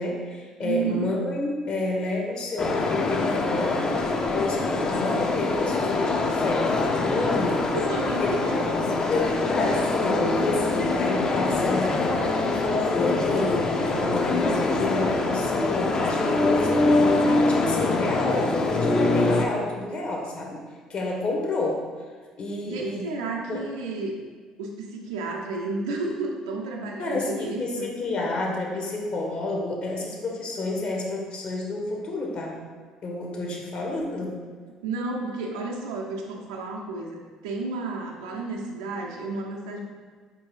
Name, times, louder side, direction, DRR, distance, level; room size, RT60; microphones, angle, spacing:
voice 1, 0.0-3.9 4.3-7.7 8.2-8.4 9.1-20.6 20.9-21.9 22.4-23.0 23.5-23.6 27.0-32.6 33.0-34.4, left 2 dB, 45° left, 0 dB, 0.8 m, -29 dB
voice 2, 0.6-1.1 7.7-8.7 10.2-10.3 22.6-24.2 24.6-27.9 34.8-37.2 37.4-39.8, right 3 dB, 75° right, 0 dB, 0.5 m, -32 dB
sound 1, 2.6-19.5, left 3 dB, 30° left, 0.4 m, -24 dB
4.4 x 2.7 x 3.1 m, 1.5 s
figure-of-eight pair, 55°, 2 cm